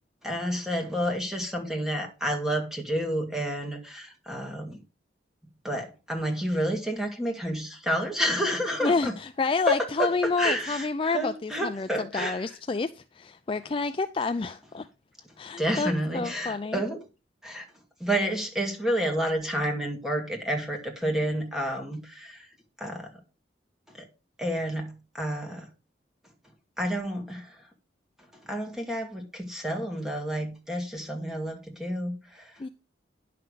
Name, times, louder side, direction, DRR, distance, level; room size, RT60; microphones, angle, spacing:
voice 1, 0.2-4.8 5.6-9.1 9.7-12.5 15.6-17.0 17.4-17.7 18.0-22.5 22.8-23.1 23.9-24.1 24.4-25.7 26.8-27.6 28.5-32.7, equal, 5° right, 2.0 m, -30 dB
voice 2, 8.8-14.9 15.4-16.8 32.6-32.7, left 4 dB, 30° left, 0.4 m, -29 dB
10.5 x 5.9 x 5.0 m
head